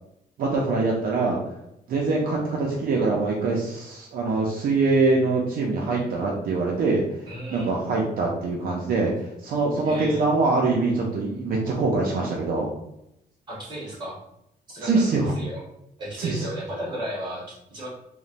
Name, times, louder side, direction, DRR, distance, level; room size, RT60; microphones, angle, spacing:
voice 1, 0.4-1.4 1.9-7.0 7.5-12.7 14.8-15.3 16.2-16.5, right 3 dB, 65° right, -2 dB, 0.4 m, -24 dB
voice 2, 7.3-7.8 9.8-10.3 13.5-14.2 14.7-15.0 15.3-15.6 16.0-17.9, right 1 dB, 25° right, -6 dB, 1.1 m, -34 dB
2.9 x 2.1 x 2.5 m, 0.81 s
wide cardioid pair, 180°, 16 cm